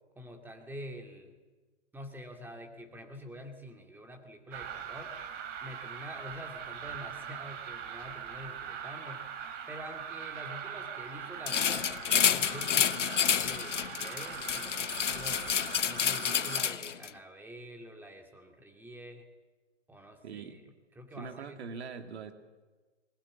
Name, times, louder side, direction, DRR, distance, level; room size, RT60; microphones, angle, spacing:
voice 1, 0.2-1.4 1.9-5.1 5.6-9.3 9.7-11.9 12.3-15.5 15.8-19.2 19.9-20.6 21.0-21.6, equal, 5° right, 4 dB, 2.2 m, -47 dB
sound 1, 4.5-16.6, right 8 dB, 25° right, 2.9 m, -41 dB
sound 2, 11.5-17.1, left 8 dB, 75° left, 0.9 m, -29 dB
voice 2, 20.2-20.6 21.2-22.3, right 5 dB, 60° right, 7 dB, 2.4 m, -42 dB
20.0 x 19.5 x 8.6 m, 1.3 s
hypercardioid pair, 130°, 37 cm